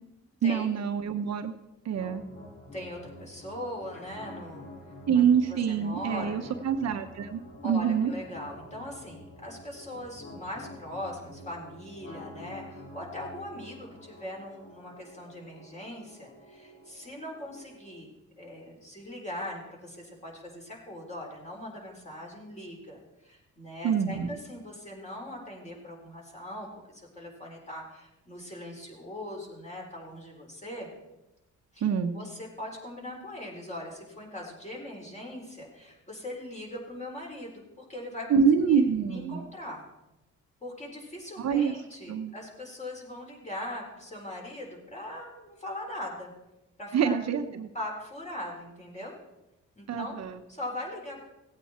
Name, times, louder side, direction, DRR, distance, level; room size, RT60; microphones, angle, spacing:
voice 1, 0.4-1.5 1.8-2.2 5.1-8.1 23.8-24.3 31.8-32.2 38.3-39.5 41.4-41.7 42.1-42.3 46.9-47.7 49.9-50.4, right 7 dB, 60° right, 6 dB, 1.0 m, -26 dB
sound 1, 1.9-17.9, left 1 dB, 60° left, 4.7 m, -48 dB
voice 2, 2.7-4.7 5.1-5.2 5.5-6.5 7.6-18.1 18.4-30.9 31.7-31.9 32.1-38.4 38.7-39.8 40.6-46.3 46.8-47.1 47.7-49.1 49.7-50.2 50.5-51.2, left 1 dB, 25° left, -1 dB, 4.2 m, -40 dB
17.0 x 8.7 x 4.3 m, 0.96 s
cardioid pair, 90°, 30 cm